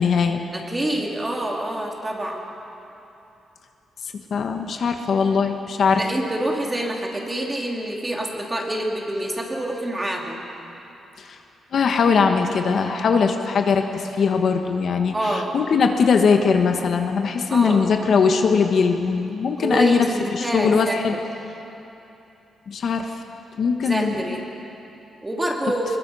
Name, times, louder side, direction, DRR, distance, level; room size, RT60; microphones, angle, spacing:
voice 1, 0.0-0.4 4.3-6.0 11.2-11.4 11.7-20.1 20.3-21.1 22.7-23.1 23.6-24.2, left 5 dB, 55° left, 5 dB, 1.3 m, -20 dB
voice 2, 0.5-2.4 5.9-10.4 15.1-15.6 17.5-17.8 19.6-21.0 23.8-24.4 25.2-25.8, right 1 dB, 15° right, 0 dB, 2.6 m, -26 dB
23.5 x 21.5 x 5.5 m, 2.9 s
cardioid pair, 140°, 0 cm